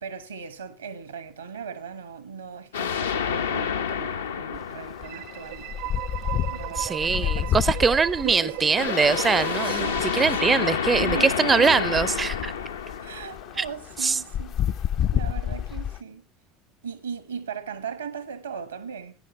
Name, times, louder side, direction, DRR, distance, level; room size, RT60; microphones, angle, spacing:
voice 1, 0.0-5.7 6.5-8.8 9.6-10.4 11.0-11.8 13.0-16.2 16.8-19.1, right 6 dB, 80° right, 1.3 m, -38 dB
sound 1, 2.7-5.9 8.8-13.9, left 7 dB, 75° left, 0.8 m, -29 dB
sound 2, 4.5-4.7 5.0-16.0, left 10 dB, 45° left, 0.5 m, -30 dB
sound 3, 5.0-11.8, right 18 dB, 65° right, 0.7 m, -36 dB
voice 2, 6.8-12.5 13.6-13.7 14.0-14.2, right 5 dB, 25° right, 0.5 m, -23 dB
15.5 x 10.5 x 3.2 m
figure-of-eight pair, 65°, 0 cm